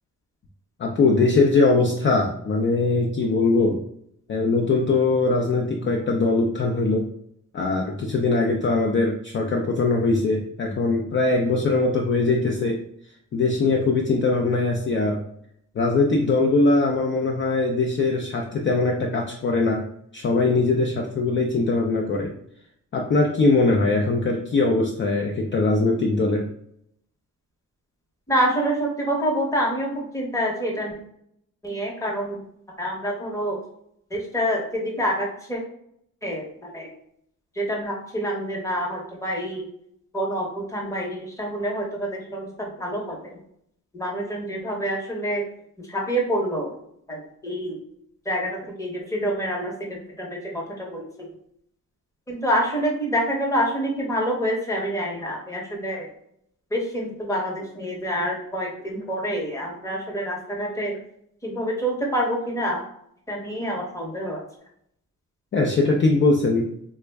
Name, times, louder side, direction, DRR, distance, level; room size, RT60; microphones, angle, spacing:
voice 1, 0.8-3.8 4.3-7.1 7.5-12.8 13.3-15.2 15.8-19.9 20.1-22.4 22.9-26.5 65.5-66.7, left 3 dB, 40° left, 0 dB, 0.4 m, -21 dB
voice 2, 28.3-30.9 31.6-32.4 32.8-33.6 34.1-35.6 36.2-36.9 37.6-39.7 40.1-43.4 43.9-45.4 45.9-46.7 47.1-47.8 48.3-51.1 52.3-56.1 56.7-60.9 61.4-62.8 63.3-64.4, equal, 10° left, -1 dB, 0.7 m, -27 dB
3.4 x 2.0 x 3.3 m, 0.71 s
wide cardioid pair, 145°, 32 cm